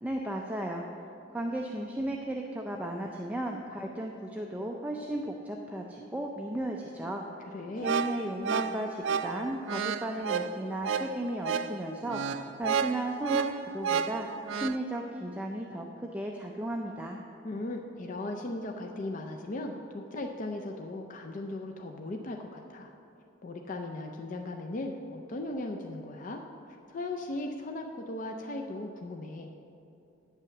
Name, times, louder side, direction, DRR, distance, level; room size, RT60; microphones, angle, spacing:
voice 1, 0.0-0.8 1.3-7.5 7.8-12.2 12.6-14.3 14.5-15.9 16.1-17.2, right 1 dB, 10° right, 0 dB, 0.4 m, -35 dB
voice 2, 7.5-7.9 17.4-22.9 23.4-26.4 26.9-29.5, left 2 dB, 45° left, 3 dB, 0.5 m, -37 dB
sound 1, 7.8-14.8, right 6 dB, 80° right, 0.4 m, -31 dB
9.2 x 5.6 x 7.1 m, 2.7 s
head